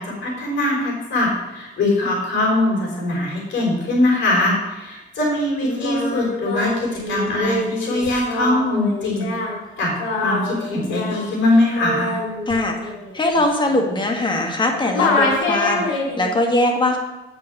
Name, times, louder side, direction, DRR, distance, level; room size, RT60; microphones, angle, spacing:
voice 1, 0.0-9.3 9.8-9.9 10.2-12.1, left 2 dB, 70° left, -2 dB, 3.7 m, -21 dB
Singing, 5.6-14.6 14.9-16.3, left 2 dB, 90° left, 2.1 m, -25 dB
voice 2, 12.5-17.0, left 1 dB, 25° left, 2 dB, 1.7 m, -21 dB
8.3 x 5.7 x 6.0 m, 1.0 s
cardioid pair, 90°, 20 cm